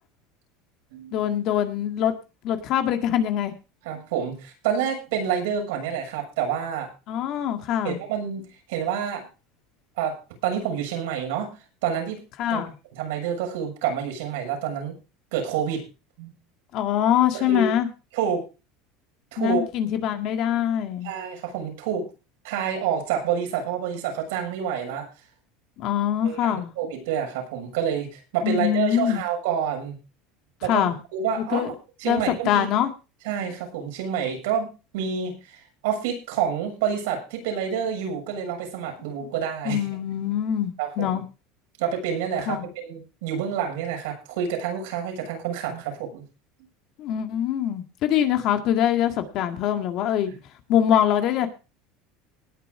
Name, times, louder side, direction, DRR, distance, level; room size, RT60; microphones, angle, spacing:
voice 1, 1.1-2.1 2.4-3.5 7.1-8.0 12.4-12.7 16.7-17.9 19.4-21.1 25.8-26.7 28.4-29.2 30.7-31.0 31.5-31.7 32.1-32.9 39.2-39.3 39.6-41.2 42.5-42.7 47.0-50.3 50.7-51.5, left 10 dB, 50° left, 7 dB, 1.9 m, -23 dB
voice 2, 3.8-6.9 7.8-9.3 10.0-11.5 11.8-12.2 12.5-12.6 12.9-15.0 15.3-15.8 16.2-16.3 17.3-17.7 18.1-18.4 19.3-19.6 21.0-22.1 22.4-25.1 26.2-30.0 30.6-31.7 32.0-32.7 33.3-39.8 40.8-41.2 41.8-46.2, right 8 dB, 85° right, 3 dB, 6.9 m, -28 dB
19.0 x 7.1 x 4.8 m, 0.31 s
supercardioid pair, 140°, 0 cm